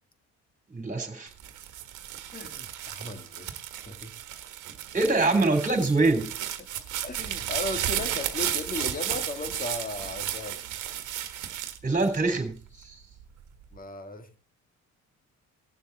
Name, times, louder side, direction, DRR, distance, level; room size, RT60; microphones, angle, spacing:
voice 1, 0.7-1.3 4.9-6.3 11.8-13.0, right 3 dB, 25° right, 3.3 m, -24 dB
sound 1, 1.3-12.7 13.2-13.8, right 11 dB, 85° right, 1.5 m, -34 dB
voice 2, 2.3-4.2 6.6-6.7 7.0-10.6 13.7-14.4, left 3 dB, 30° left, 2.0 m, -37 dB
18.5 x 7.1 x 4.0 m
cardioid pair, 90°, 30 cm